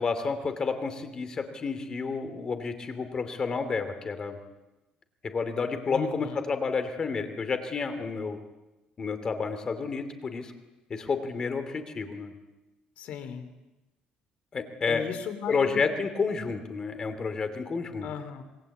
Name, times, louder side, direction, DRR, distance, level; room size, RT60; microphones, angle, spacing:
voice 1, 0.0-4.4 5.2-8.4 9.0-10.5 10.9-12.3 14.5-15.1 15.5-18.1, left 4 dB, 25° left, 9 dB, 2.7 m, -30 dB
voice 2, 5.9-6.4 13.0-13.5 14.9-16.0 18.0-18.4, left 8 dB, 65° left, 10 dB, 3.1 m, -37 dB
26.5 x 22.0 x 8.5 m, 1.0 s
cardioid pair, 170°, 3 cm